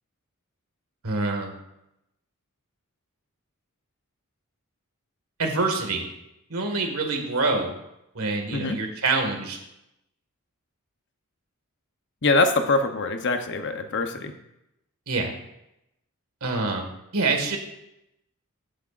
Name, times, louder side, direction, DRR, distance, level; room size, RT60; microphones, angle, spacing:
voice 1, 1.0-1.5 5.4-6.0 6.5-7.7 8.2-9.6 15.1-15.3 16.4-17.6, right 3 dB, 75° right, 3 dB, 1.9 m, -26 dB
voice 2, 12.2-14.3, left 3 dB, 55° left, 7 dB, 0.8 m, -23 dB
14.5 x 7.7 x 2.5 m, 0.85 s
head